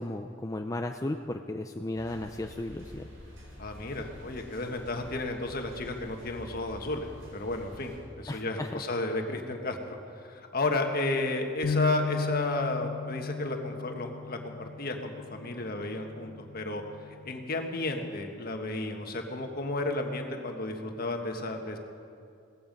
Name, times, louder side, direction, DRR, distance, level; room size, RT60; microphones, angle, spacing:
voice 1, 0.0-3.1 8.3-8.8, left 1 dB, 15° left, 4 dB, 0.4 m, -35 dB
sound 1, 1.9-8.0, equal, 85° right, 5.1 m, -48 dB
voice 2, 3.6-7.1 7.3-10.0 10.3-16.8 17.2-21.8, left 2 dB, 50° left, 4 dB, 1.5 m, -32 dB
sound 2, 11.6-17.9, left 5 dB, 80° left, 0.4 m, -36 dB
17.0 x 15.0 x 5.4 m, 2.5 s
head